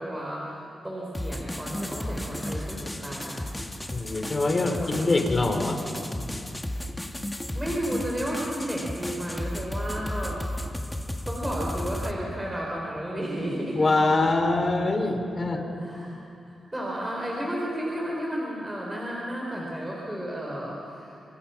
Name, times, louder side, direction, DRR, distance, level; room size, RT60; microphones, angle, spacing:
voice 1, 0.0-3.4 4.6-4.9 5.6-6.1 7.5-10.7 11.3-13.8 15.5-16.2 16.5-21.2, equal, 15° right, -3 dB, 4.6 m, -33 dB
sound 1, 1.1-12.1, left 1 dB, 10° left, 1.7 m, -34 dB
voice 2, 3.9-5.8 13.7-15.6, left 2 dB, 35° left, 4 dB, 3.5 m, -24 dB
29.0 x 27.0 x 5.9 m, 2.6 s
cardioid pair, 85°, 0 cm